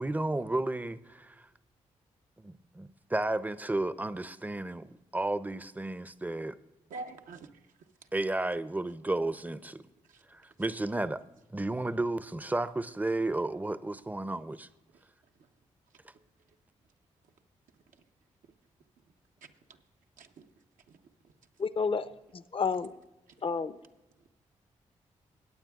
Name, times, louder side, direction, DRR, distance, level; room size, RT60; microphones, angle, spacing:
voice 1, 0.0-1.5 2.4-6.6 8.1-9.8 10.3-11.2 11.5-14.7, right 2 dB, 10° right, 0.5 m, -33 dB
voice 2, 6.9-8.1 10.0-10.2 14.9-15.1 15.3-15.5 17.9-18.1 18.4-18.6 19.4-19.8 20.2-20.5 20.9-21.3 23.3-23.4, right 3 dB, 75° right, 0.7 m, -48 dB
voice 3, 21.6-22.1 22.5-22.9 23.4-23.7, left 5 dB, 40° left, 0.6 m, -29 dB
17.5 x 8.7 x 2.3 m
supercardioid pair, 45°, 14 cm